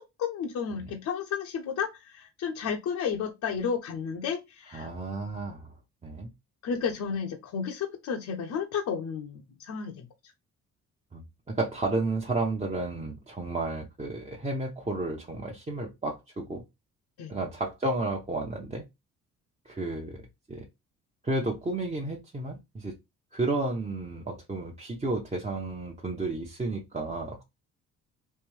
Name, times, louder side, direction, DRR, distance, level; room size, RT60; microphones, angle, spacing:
voice 1, 0.2-4.9 6.6-10.1 17.2-17.3, left 6 dB, 70° left, 0.7 m, -32 dB
voice 2, 4.7-5.7 6.0-6.3 11.1-16.6 17.3-18.8 19.6-20.2 20.5-20.7 21.2-22.9 23.3-27.4, right 2 dB, 20° right, 0.8 m, -32 dB
3.3 x 2.6 x 3.1 m
cardioid pair, 90°, 30 cm